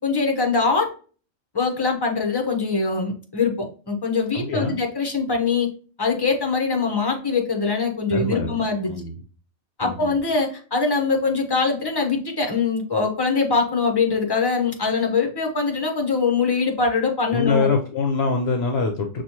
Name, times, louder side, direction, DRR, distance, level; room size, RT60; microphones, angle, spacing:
voice 1, 0.0-0.9 1.5-5.7 6.0-8.9 9.8-17.7, left 4 dB, 20° left, 2 dB, 0.8 m, -23 dB
voice 2, 4.3-4.8 8.1-9.2 9.8-10.1 17.3-19.2, left 4 dB, 60° left, 3 dB, 0.8 m, -24 dB
6.1 x 2.4 x 2.9 m, 0.39 s
omnidirectional pair, 1.3 m